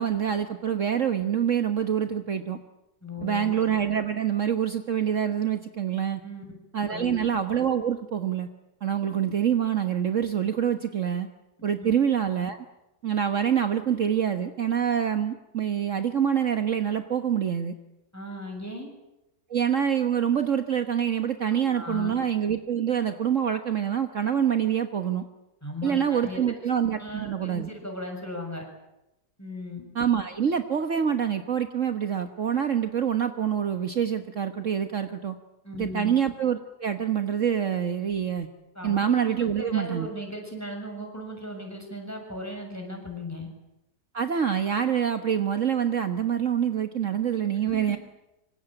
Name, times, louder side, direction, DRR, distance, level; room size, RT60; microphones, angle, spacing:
voice 1, 0.0-2.6 3.2-6.2 6.7-8.5 8.8-11.3 11.6-12.6 13.0-17.7 19.5-25.2 25.8-27.7 29.9-35.4 35.8-38.5 38.8-40.1 44.1-48.0, right 8 dB, 50° right, 8 dB, 1.6 m, -26 dB
voice 2, 3.0-3.6 6.2-6.4 6.9-7.3 11.8-11.9 18.1-18.9 21.5-22.2 25.6-26.5 27.0-28.6 29.4-29.9 35.6-36.1 38.7-43.5 47.6-48.0, left 1 dB, 10° left, 2 dB, 6.9 m, -37 dB
25.5 x 25.5 x 8.9 m, 0.92 s
omnidirectional pair, 1.7 m